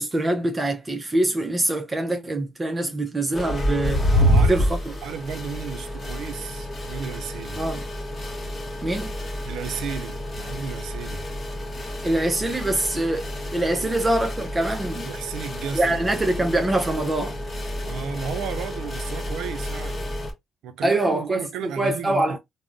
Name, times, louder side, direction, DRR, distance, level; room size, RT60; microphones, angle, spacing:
voice 1, 0.0-4.1 4.5-4.9 7.6-7.8 8.8-9.1 12.0-15.1 15.7-17.4 20.8-22.4, right 1 dB, 25° right, 0.5 m, -24 dB
sound 1, 3.3-20.3, equal, 35° left, 1.1 m, -28 dB
voice 2, 4.1-4.7 5.0-7.6 9.4-11.3 13.6-13.9 15.0-16.1 17.9-20.1 20.6-22.4, right 7 dB, 85° right, 0.5 m, -34 dB
3.5 x 2.1 x 2.4 m
cardioid pair, 90°, 0 cm